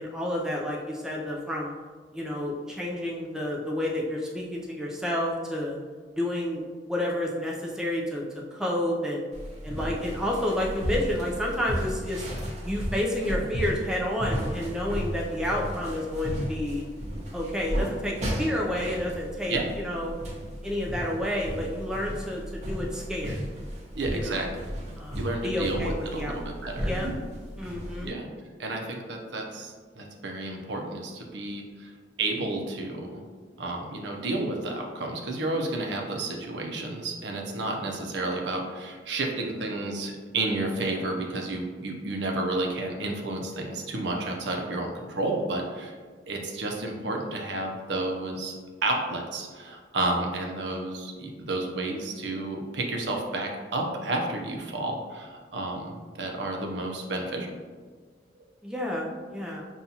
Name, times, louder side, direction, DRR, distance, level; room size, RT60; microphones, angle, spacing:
voice 1, 0.0-1.7 2.1-5.8 6.1-9.2 9.6-12.3 12.6-16.8 17.3-20.2 20.6-23.4 24.1-24.5 25.0-27.1 27.6-28.1 58.6-59.6, left 1 dB, 5° right, -3 dB, 0.4 m, -30 dB
sound 1, 9.3-28.1, equal, 40° right, 0.8 m, -34 dB
voice 2, 23.9-24.5 25.1-26.9 28.0-28.3 28.6-31.9 32.2-33.2 33.6-45.9 46.3-48.5 48.8-57.6, right 2 dB, 65° right, 1 dB, 0.6 m, -31 dB
5.4 x 2.3 x 2.7 m, 1.5 s
head